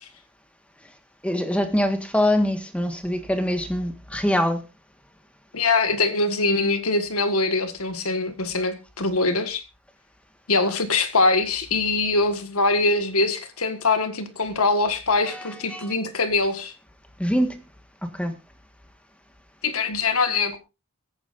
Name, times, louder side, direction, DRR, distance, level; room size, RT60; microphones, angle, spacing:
voice 1, 1.2-4.6 15.3-15.8 17.2-17.6 18.0-18.3, equal, 5° left, 7 dB, 1.5 m, -24 dB
voice 2, 5.5-9.6 10.5-16.7 19.6-20.6, left 3 dB, 80° left, 9 dB, 1.8 m, -23 dB
23.0 x 9.2 x 2.6 m, 0.26 s
head